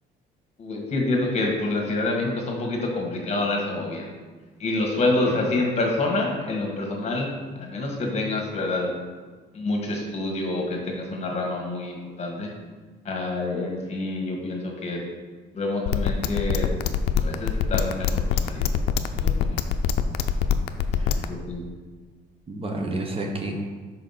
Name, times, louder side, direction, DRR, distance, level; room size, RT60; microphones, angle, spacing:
voice 1, 0.6-4.1 4.6-8.9 9.5-12.5 13.0-15.0 15.5-16.7 17.2-18.7 19.1-19.6 20.9-21.7, left 2 dB, 40° left, 0 dB, 1.5 m, -27 dB
sound 1, 15.9-21.2, left 10 dB, 80° left, 0.4 m, -23 dB
voice 2, 21.0-21.3 22.5-23.7, right 2 dB, 35° right, 2 dB, 0.9 m, -31 dB
4.8 x 4.5 x 5.7 m, 1.4 s
cardioid pair, 110°, 17 cm